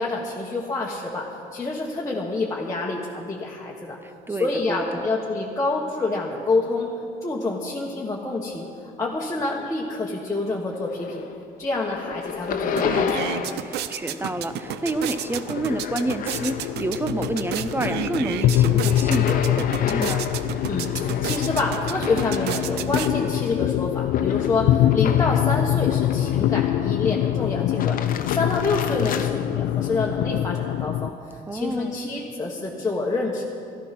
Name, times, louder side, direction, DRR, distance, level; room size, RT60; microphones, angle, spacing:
voice 1, 0.0-4.0 4.3-6.9 7.2-8.7 9.0-11.3 11.6-13.4 20.7-33.4, left 3 dB, 15° left, -4 dB, 1.3 m, -27 dB
voice 2, 4.0-5.1 13.6-20.2 31.5-32.0, right 2 dB, 15° right, 10 dB, 0.5 m, -29 dB
sound 1, 10.7-11.4 11.7-13.7 14.0-16.9 17.3-25.6 26.1-26.8 27.6-29.3, left 8 dB, 55° left, 0.9 m, -32 dB
sound 2, 12.2-12.3 12.6-23.5, right 11 dB, 80° right, 0.6 m, -32 dB
sound 3, 14.3-31.1, left 12 dB, 75° left, 0.4 m, -24 dB
13.0 x 13.0 x 5.9 m, 2.5 s
cardioid pair, 110°, 17 cm